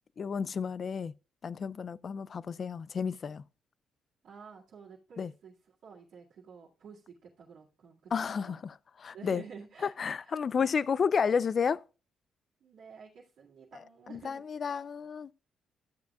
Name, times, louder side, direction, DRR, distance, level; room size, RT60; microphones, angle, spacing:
voice 1, 0.2-1.1 1.4-3.4 5.2-5.3 8.1-8.7 9.0-9.4 9.8-11.8 14.1-15.3, left 6 dB, 45° left, 0.3 m, -31 dB
voice 2, 4.2-8.1 8.5-8.6 9.1-10.0 10.2-10.4 12.6-14.4, right 6 dB, 70° right, 2.1 m, -51 dB
13.5 x 7.0 x 2.4 m
cardioid pair, 90°, 0 cm